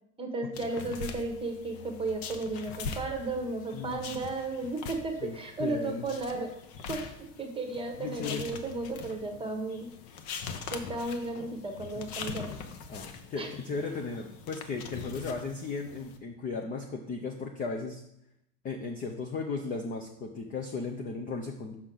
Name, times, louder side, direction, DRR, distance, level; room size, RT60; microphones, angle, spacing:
voice 1, 0.2-6.5 6.9-9.9 10.7-12.6 13.4-13.5, right 2 dB, 10° right, 4 dB, 1.0 m, -34 dB
sound 1, 0.5-16.2, left 5 dB, 50° left, 0.8 m, -43 dB
voice 2, 3.7-4.3 5.2-6.1 8.0-8.5 12.0-12.1 12.9-18.0 18.6-21.7, left 4 dB, 20° left, 2 dB, 0.4 m, -36 dB
6.3 x 5.8 x 3.8 m, 0.80 s
supercardioid pair, 130°, 45 cm